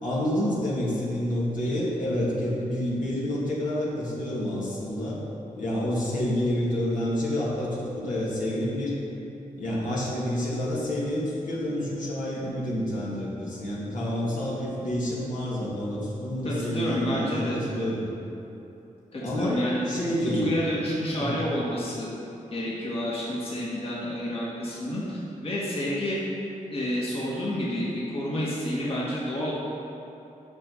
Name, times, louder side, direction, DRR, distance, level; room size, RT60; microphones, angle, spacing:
voice 1, 0.0-5.2 5.5-9.0 9.6-18.0 19.2-20.5 21.2-21.4, left 1 dB, 70° left, -7 dB, 2.3 m, -28 dB
voice 2, 16.4-17.6 19.1-19.8 20.4-22.1 22.5-26.2 26.7-29.5, equal, 45° left, -7 dB, 1.9 m, -29 dB
9.6 x 6.3 x 5.4 m, 3.0 s
wide cardioid pair, 110°, 14 cm